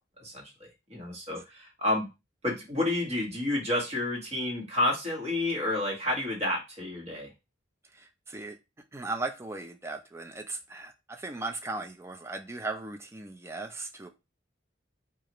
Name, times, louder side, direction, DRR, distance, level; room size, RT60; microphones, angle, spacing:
voice 1, 0.9-2.1 2.4-7.3, left 1 dB, 35° right, -2 dB, 1.5 m, -30 dB
voice 2, 7.9-8.6 8.9-14.1, right 3 dB, 15° right, 5 dB, 0.4 m, -37 dB
4.7 x 2.4 x 2.9 m, 0.25 s
head